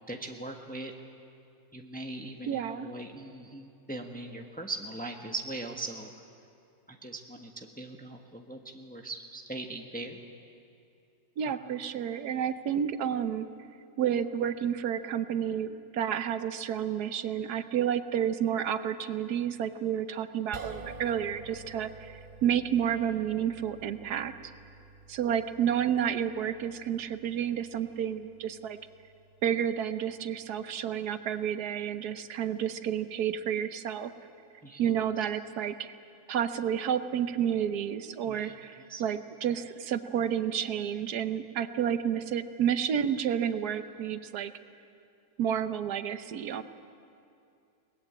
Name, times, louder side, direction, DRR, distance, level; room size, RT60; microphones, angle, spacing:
voice 1, 0.1-0.9 1.7-6.1 6.9-10.2 11.5-11.6 34.6-34.8 38.3-39.0, right 2 dB, 5° left, 3 dB, 1.2 m, -40 dB
voice 2, 2.5-2.9 11.4-13.5 14.0-24.3 25.1-28.8 29.4-34.1 34.8-35.9 36.3-44.5 45.4-46.6, right 9 dB, 85° right, 11 dB, 1.4 m, -30 dB
sound 1, 20.5-32.8, right 3 dB, 30° right, 0.9 m, -51 dB
22.5 x 20.0 x 8.8 m, 2.6 s
omnidirectional pair, 1.6 m